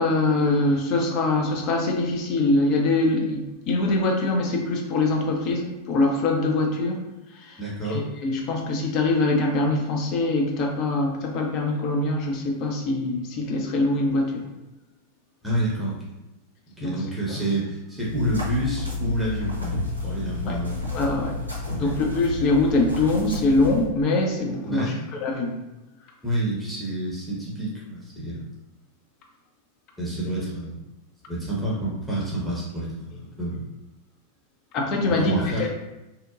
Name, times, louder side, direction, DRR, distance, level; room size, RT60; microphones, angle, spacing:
voice 1, 0.0-7.0 7.3-7.6 7.8-14.5 16.8-17.4 20.5-20.6 20.9-21.3 21.7-24.9 25.2-25.6 34.7-35.7, left 2 dB, 40° left, 1 dB, 0.5 m, -23 dB
voice 2, 7.6-8.0 15.4-16.0 16.8-20.8 21.8-21.9 24.7-25.0 26.2-28.4 30.0-30.8 31.3-33.7 35.1-35.7, right 1 dB, 5° right, -7 dB, 0.7 m, -28 dB
sound 1, 18.0-23.9, left 3 dB, 90° right, 0.5 m, -31 dB
2.7 x 2.1 x 2.5 m, 1.0 s
figure-of-eight pair, 90°, 0 cm